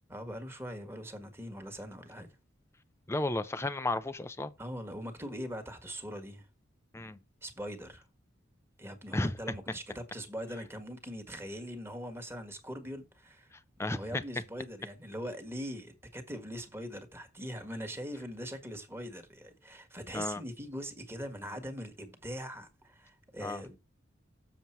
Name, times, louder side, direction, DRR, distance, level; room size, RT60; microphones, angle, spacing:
voice 1, 0.1-2.3 4.6-6.5 7.4-8.0 8.8-13.5 13.8-23.8, equal, 15° right, 1.6 m, -42 dB
voice 2, 3.1-4.5 6.9-7.2 9.1-9.4 13.5-14.2 20.1-20.4 23.4-23.6, left 2 dB, 15° left, 0.5 m, -33 dB
7.4 x 6.8 x 4.5 m
head